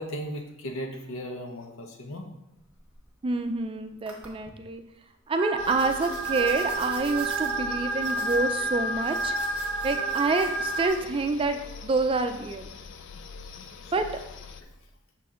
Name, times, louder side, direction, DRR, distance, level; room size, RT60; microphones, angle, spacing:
voice 1, 0.0-2.3 8.6-8.7 13.1-13.2 13.6-13.9, equal, 80° left, 3 dB, 0.9 m, -37 dB
sound 1, 2.5-3.6 4.1-4.5 5.6-10.9, right 1 dB, 5° right, 1.1 m, -46 dB
voice 2, 3.2-4.8 5.3-9.3 9.8-11.6 11.8-12.7 13.9-14.1, right 3 dB, 25° right, 8 dB, 0.4 m, -27 dB
sound 2, 5.4-10.9, right 2 dB, 65° right, 0.6 m, -30 dB
sound 3, 5.6-14.6, left 5 dB, 65° left, 0.4 m, -44 dB
6.4 x 4.3 x 3.7 m, 0.90 s
head